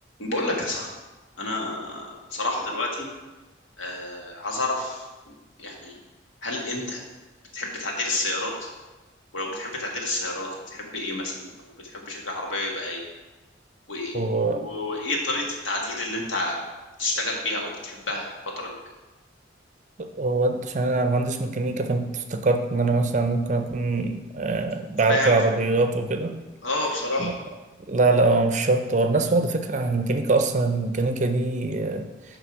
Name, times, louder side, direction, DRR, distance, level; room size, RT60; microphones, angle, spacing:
voice 1, 0.2-0.9 1.4-3.1 3.8-5.0 5.6-6.0 6.4-7.0 7.5-8.5 9.3-11.5 11.8-13.0 13.9-16.6 17.0-18.8 25.1-25.4 26.6-27.3, left 2 dB, 85° left, -1 dB, 1.7 m, -29 dB
voice 2, 14.1-14.7 20.0-26.4 27.2-27.3 27.9-32.1, right 3 dB, 40° right, 7 dB, 0.5 m, -23 dB
9.4 x 3.4 x 6.0 m, 1.1 s
head